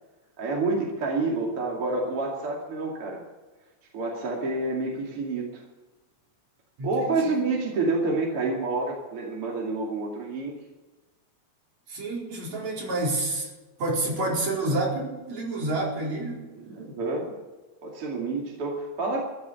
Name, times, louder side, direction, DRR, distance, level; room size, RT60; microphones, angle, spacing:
voice 1, 0.4-3.2 3.9-5.6 6.8-10.5 16.5-17.3 17.8-19.2, right 3 dB, 50° right, -2 dB, 3.4 m, -28 dB
voice 2, 11.9-13.5 13.8-16.5, right 2 dB, 70° right, -3 dB, 5.9 m, -28 dB
15.0 x 13.0 x 7.0 m, 1.2 s
omnidirectional pair, 3.3 m